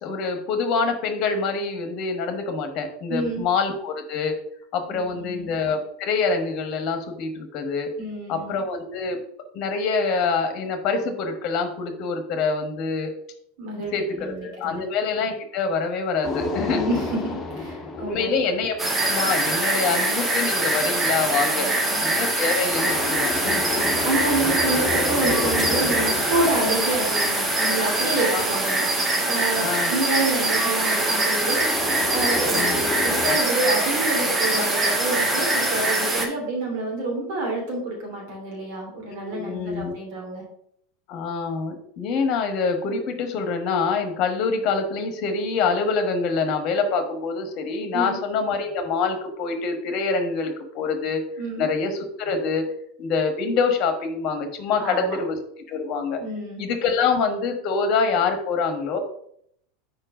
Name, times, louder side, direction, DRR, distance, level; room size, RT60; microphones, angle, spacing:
voice 1, 0.0-4.3 4.7-7.9 8.3-9.2 9.5-13.1 13.9-16.8 17.9-18.7 19.0-21.7 22.0-23.6 28.3-28.4 29.6-30.1 32.5-32.9 39.1-39.9 41.1-51.2 51.6-52.7 53.0-55.4 55.7-56.2 56.6-59.0, left 4 dB, 50° left, 7 dB, 1.2 m, -25 dB
voice 2, 3.1-3.4 4.9-5.4 8.0-8.5 13.6-14.8 16.7-18.3 21.5-22.0 23.7-31.6 32.1-40.4 47.9-48.1 51.4-51.6 54.8-55.2 56.2-56.6, right 2 dB, 60° right, -1 dB, 2.8 m, -28 dB
sound 1, 16.2-19.3 22.7-28.1 31.6-33.4, left 3 dB, 30° left, 1.1 m, -31 dB
sound 2, 18.8-36.3, right 2 dB, 20° right, 1.4 m, -23 dB
4.7 x 4.5 x 6.0 m, 0.68 s
hypercardioid pair, 85°, 0 cm